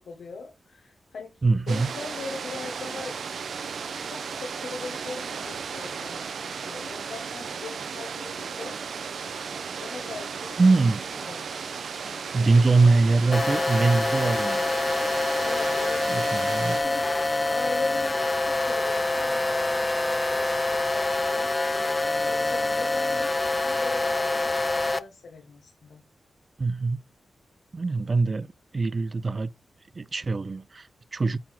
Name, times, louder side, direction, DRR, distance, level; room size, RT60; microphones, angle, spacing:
voice 1, 0.0-1.3 1.7-3.1 4.0-8.7 9.8-10.6 11.2-11.5 12.0-13.3 15.4-17.1 17.5-26.0, left 4 dB, 80° left, 1.5 m, -40 dB
voice 2, 1.4-1.9 10.6-11.0 12.3-14.7 16.1-16.8 26.6-27.0 27.7-28.5 28.7-29.5 30.0-31.4, right 3 dB, 40° right, 0.4 m, -22 dB
sound 1, 1.7-16.8, right 6 dB, 80° right, 0.8 m, -35 dB
sound 2, 13.3-25.0, left 2 dB, 25° left, 0.5 m, -26 dB
8.6 x 3.9 x 4.4 m
cardioid pair, 75°, 0 cm